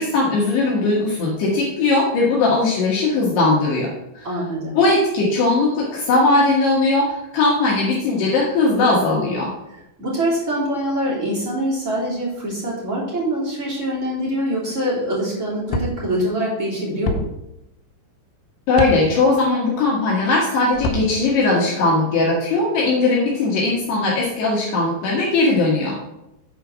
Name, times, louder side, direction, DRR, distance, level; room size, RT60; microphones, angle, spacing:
voice 1, 0.0-3.9 4.1-4.3 4.7-9.5 18.7-26.0, left 3 dB, 70° left, -4 dB, 3.2 m, -19 dB
voice 2, 4.2-4.8 10.0-17.2, right 1 dB, 20° right, -7 dB, 2.7 m, -24 dB
sound 1, 15.7-15.9 17.1-17.2 18.7-19.0 20.7-21.0, left 1 dB, 85° left, 3.3 m, -23 dB
8.7 x 4.5 x 6.1 m, 0.87 s
omnidirectional pair, 5.4 m